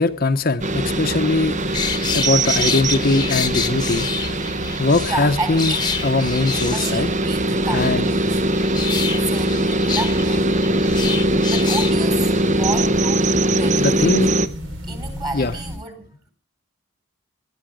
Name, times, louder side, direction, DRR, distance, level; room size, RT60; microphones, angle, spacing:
voice 1, 0.0-1.7 2.1-4.1 4.8-5.7 6.0-7.1 7.7-8.1 13.8-14.4 15.3-15.5, left 3 dB, 45° left, 0.8 m, -21 dB
sound 1, 0.6-14.5, right 1 dB, 35° right, 0.9 m, -21 dB
sound 2, 0.6-15.8, equal, 75° right, 4.6 m, -33 dB
sound 3, 1.6-5.1 5.6-7.3 7.6-11.9 12.3-12.4, left 6 dB, 20° left, 1.2 m, -28 dB
voice 2, 5.0-5.9 6.7-8.4 9.0-10.5 11.5-14.1 14.9-16.3, right 2 dB, 20° right, 3.6 m, -31 dB
19.5 x 12.5 x 5.0 m
head